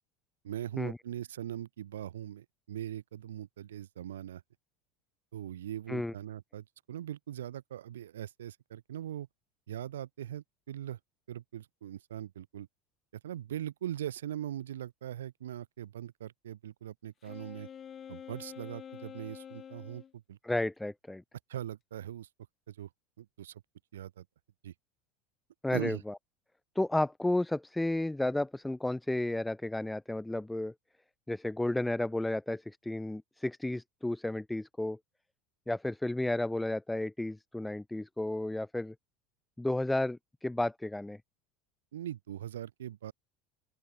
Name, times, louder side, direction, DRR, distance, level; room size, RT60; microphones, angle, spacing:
voice 1, 0.4-4.4 5.3-9.3 9.7-11.0 11.3-12.7 13.2-17.7 18.1-20.4 21.5-22.3 22.7-22.9 23.2-23.6 23.9-24.2 24.6-24.7 25.7-26.0 41.9-43.1, right 11 dB, 90° right, 2.1 m, -41 dB
Wind instrument woodwind instrument, 17.2-20.1, left 8 dB, 35° left, 1.4 m, -47 dB
voice 2, 20.4-21.2 25.6-26.2 26.7-30.7 31.3-35.0 35.7-38.9 39.6-41.2, left 1 dB, 5° left, 0.7 m, -32 dB
open air
hypercardioid pair, 90°, 0 cm